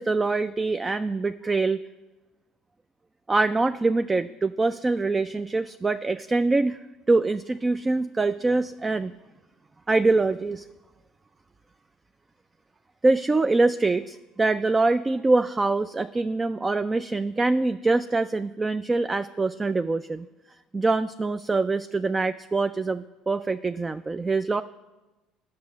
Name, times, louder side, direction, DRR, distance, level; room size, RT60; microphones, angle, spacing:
voice 1, 0.0-1.8 3.3-6.8 7.1-9.1 9.9-10.7 13.0-20.3 20.7-24.6, right 3 dB, 20° right, 12 dB, 0.3 m, -24 dB
9.4 x 6.5 x 7.1 m, 1.1 s
hypercardioid pair, 70°, 0 cm